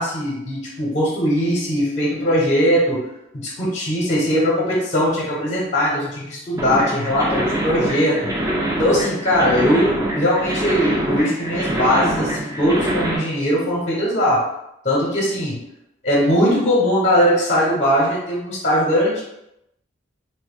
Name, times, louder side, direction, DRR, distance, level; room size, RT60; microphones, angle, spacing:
voice 1, 0.0-3.1 3.3-8.3 8.8-14.5 14.8-15.6 16.0-19.2, equal, 35° left, -4 dB, 0.6 m, -20 dB
sound 1, 6.6-13.2, right 1 dB, 15° right, 0.4 m, -24 dB
2.7 x 2.1 x 3.5 m, 0.83 s
head